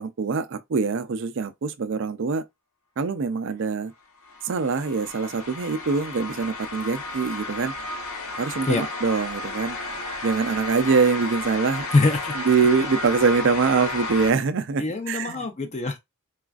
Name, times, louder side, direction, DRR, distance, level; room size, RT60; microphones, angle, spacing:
voice 1, 0.0-2.4 3.0-3.9 4.4-7.7 8.4-9.8 10.2-11.9 12.4-15.4, right 5 dB, 55° right, 0.4 m, -24 dB
sound 1, 4.2-14.3, left 2 dB, 65° left, 1.0 m, -33 dB
voice 2, 11.9-12.4 14.8-16.0, left 3 dB, 30° left, 0.5 m, -23 dB
4.1 x 2.4 x 2.3 m
head